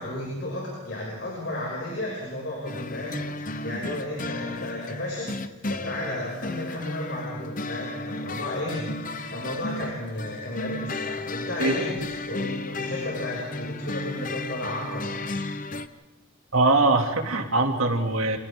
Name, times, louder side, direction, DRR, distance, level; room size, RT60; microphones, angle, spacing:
voice 1, 0.0-5.4 5.7-15.7, left 1 dB, 55° left, -4 dB, 6.8 m, -33 dB
sound 1, 2.6-15.9, left 2 dB, 40° left, 0.9 m, -34 dB
voice 2, 16.5-18.4, right 2 dB, 80° right, 3 dB, 2.7 m, -22 dB
30.0 x 27.0 x 3.9 m, 1.1 s
head